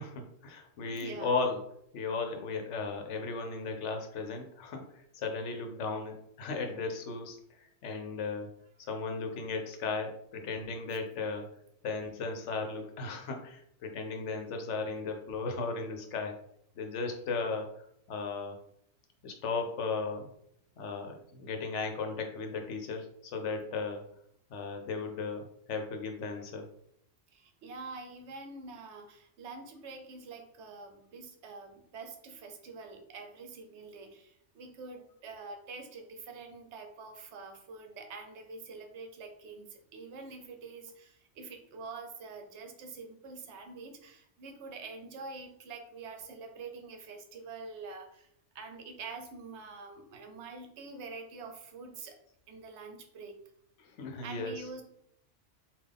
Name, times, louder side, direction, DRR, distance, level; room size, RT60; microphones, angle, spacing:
voice 1, 0.0-4.8 5.1-8.5 8.9-11.5 11.8-16.4 16.8-17.7 18.1-18.6 19.2-20.3 20.8-24.0 24.5-26.7 53.8-54.7, left 4 dB, 75° left, 4 dB, 1.0 m, -36 dB
voice 2, 0.8-1.4 27.3-48.3 48.5-52.2 52.5-53.4 54.2-54.8, right 4 dB, 70° right, 5 dB, 0.9 m, -46 dB
3.6 x 2.4 x 3.4 m, 0.70 s
omnidirectional pair, 1.2 m